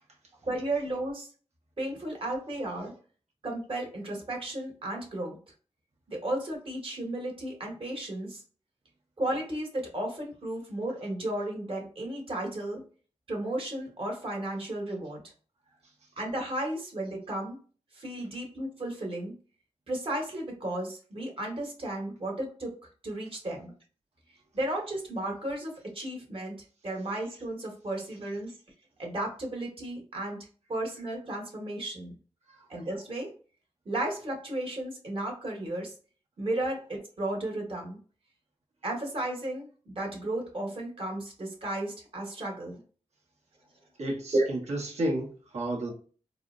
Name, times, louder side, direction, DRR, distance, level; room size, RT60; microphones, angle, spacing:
voice 1, 0.4-1.3 1.8-2.9 3.4-5.4 6.1-8.4 9.2-12.8 13.3-15.3 16.2-17.6 17.9-19.3 19.9-22.7 23.0-23.7 24.5-26.6 26.8-28.6 29.0-32.1 32.7-33.3 33.8-35.9 36.4-38.0 38.8-42.8 44.3-44.5, right 1 dB, 50° right, 0 dB, 1.3 m, -34 dB
voice 2, 44.0-45.9, right 1 dB, 70° right, -2 dB, 1.1 m, -32 dB
4.0 x 2.1 x 2.5 m, 0.40 s
wide cardioid pair, 80°, 12 cm